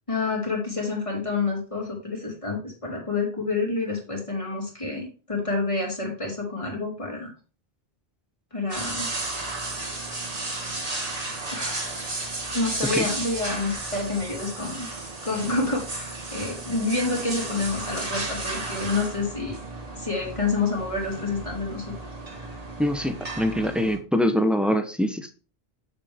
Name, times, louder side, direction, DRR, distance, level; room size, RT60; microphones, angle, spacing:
voice 1, 0.1-7.3 8.5-9.1 11.5-11.8 12.5-14.9 15.2-19.6 19.9-21.9 22.4-22.5, left 3 dB, 30° left, -1 dB, 2.9 m, -28 dB
sound 1, 8.7-24.0, right 2 dB, 40° right, 1.6 m, -34 dB
voice 2, 22.8-25.3, equal, ahead, 8 dB, 0.7 m, -24 dB
7.9 x 7.1 x 3.6 m, 0.35 s
omnidirectional pair, 1.1 m